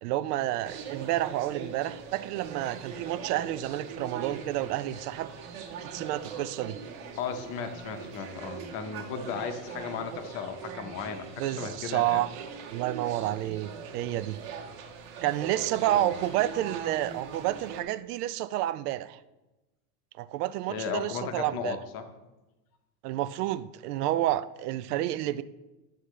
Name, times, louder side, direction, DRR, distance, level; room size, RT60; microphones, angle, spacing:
voice 1, 0.0-5.3 5.8-6.8 11.4-12.5 12.7-14.4 15.2-19.2 20.2-21.8 23.0-25.4, right 14 dB, 85° right, 15 dB, 0.6 m, -30 dB
sound 1, 0.6-17.8, right 6 dB, 60° right, 1.3 m, -41 dB
voice 2, 7.2-12.2 15.9-16.1 20.7-22.1, left 6 dB, 30° left, 7 dB, 0.6 m, -35 dB
11.5 x 6.9 x 3.1 m, 1.1 s
supercardioid pair, 175°, 45 cm